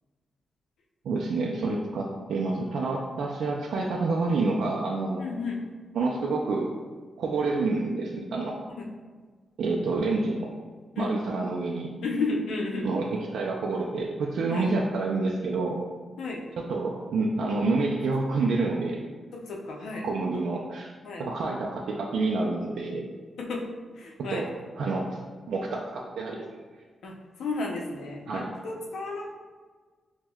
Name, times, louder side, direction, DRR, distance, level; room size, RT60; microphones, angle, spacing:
voice 1, 1.0-5.2 5.9-6.7 7.2-8.6 9.6-10.5 11.0-11.9 12.8-15.8 16.6-19.0 20.0-20.9 21.2-23.1 24.3-24.5 24.8-25.2 25.5-26.4 28.3-28.5, right 3 dB, 80° right, -2 dB, 0.3 m, -28 dB
voice 2, 5.2-5.6 8.8-8.9 10.9-11.1 12.0-12.9 14.5-14.7 16.2-16.4 19.3-20.0 21.0-21.2 23.4-23.6 23.9-24.5 27.0-29.3, left 3 dB, 85° left, 0 dB, 0.6 m, -33 dB
6.0 x 2.1 x 2.3 m, 1.5 s
wide cardioid pair, 170°, 0 cm